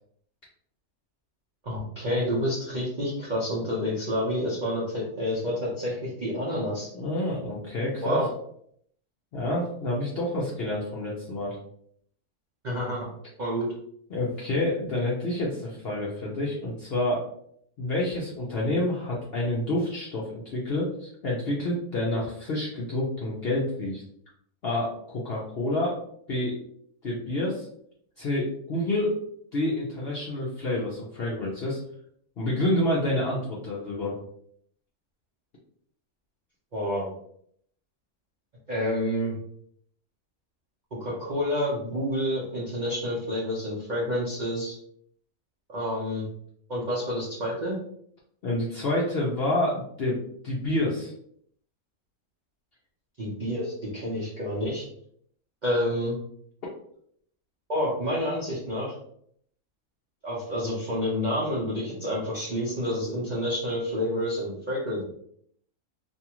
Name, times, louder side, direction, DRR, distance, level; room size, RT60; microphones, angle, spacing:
voice 1, 1.6-6.9 8.0-8.3 12.6-13.1 13.4-13.7 36.7-37.1 38.7-39.4 41.0-44.8 45.7-46.3 46.7-47.8 53.2-54.8 55.6-56.2 57.7-58.9 60.2-65.0, equal, 50° right, -7 dB, 0.6 m, -29 dB
voice 2, 6.9-8.2 9.3-11.6 14.1-17.2 17.8-24.0 24.6-26.0 26.3-26.6 27.0-27.7 28.2-29.1 29.5-31.8 32.4-34.1 48.4-51.1, left 1 dB, 60° left, -4 dB, 0.6 m, -28 dB
2.6 x 2.4 x 2.9 m, 0.67 s
omnidirectional pair, 1.6 m